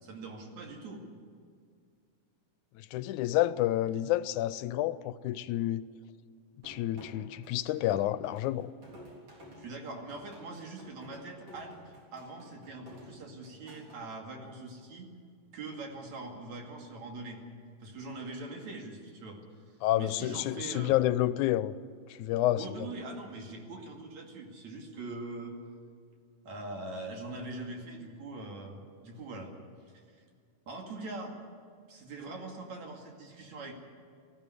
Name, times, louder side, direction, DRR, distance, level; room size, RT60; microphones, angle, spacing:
voice 1, 0.0-1.0 9.5-15.1 15.5-17.4 17.8-19.4 19.9-21.0 22.6-25.6 26.5-29.5 29.9-30.2 30.7-31.3 31.9-33.7, right 2 dB, 65° right, 3.6 m, -42 dB
voice 2, 2.9-5.8 6.6-8.7 19.8-21.7 22.2-22.6, left 14 dB, 80° left, 2.0 m, -29 dB
sound 1, 6.6-14.0, equal, 50° right, 4.5 m, -52 dB
18.5 x 14.5 x 9.8 m
omnidirectional pair, 3.6 m